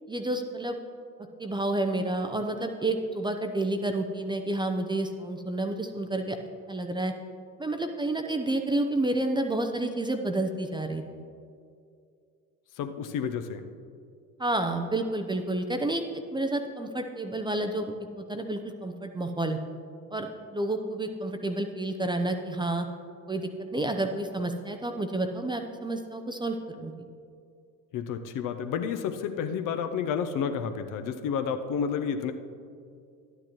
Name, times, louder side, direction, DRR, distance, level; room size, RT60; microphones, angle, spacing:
voice 1, 0.1-0.8 1.4-6.4 6.7-7.1 7.6-11.0 14.4-19.6 20.1-22.9 23.3-26.9, right 2 dB, 10° right, 5 dB, 0.6 m, -30 dB
voice 2, 12.8-13.7 27.9-32.3, left 7 dB, 50° left, 8 dB, 0.7 m, -30 dB
12.0 x 9.6 x 3.0 m, 2.4 s
hypercardioid pair, 65°, 43 cm